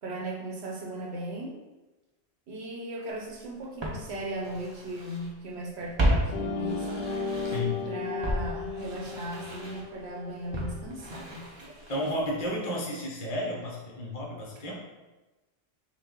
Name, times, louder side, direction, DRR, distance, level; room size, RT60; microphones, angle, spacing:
voice 1, 0.0-1.6 2.5-7.1 7.9-11.5, right 1 dB, 70° right, -1 dB, 1.1 m, -37 dB
Walk footsteps, 3.1-3.2 3.8-5.3 5.6-7.8 8.2-12.3 12.5-12.6, equal, 30° right, 0.6 m, -33 dB
sound 1, 6.3-11.0, left 4 dB, 75° left, 0.9 m, -35 dB
voice 2, 7.4-7.8 11.9-14.7, left 1 dB, 40° left, -3 dB, 0.9 m, -32 dB
5.6 x 2.4 x 3.7 m, 1.1 s
omnidirectional pair, 1.1 m